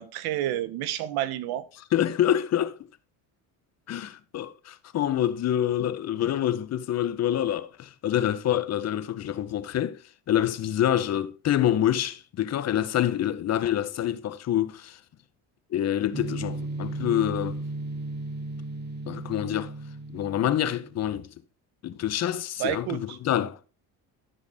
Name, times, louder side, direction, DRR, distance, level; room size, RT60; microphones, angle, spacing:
voice 1, 0.0-1.7 22.6-23.2, right 12 dB, 75° right, 1.0 m, -30 dB
voice 2, 1.9-2.8 3.9-10.0 10.3-15.0 15.7-17.6 19.1-19.7 20.1-21.3 21.8-23.6, left 11 dB, 45° left, 0.8 m, -26 dB
sound 1, 16.1-21.0, right 2 dB, 30° right, 1.3 m, -35 dB
12.5 x 5.3 x 4.0 m
cardioid pair, 115°, 37 cm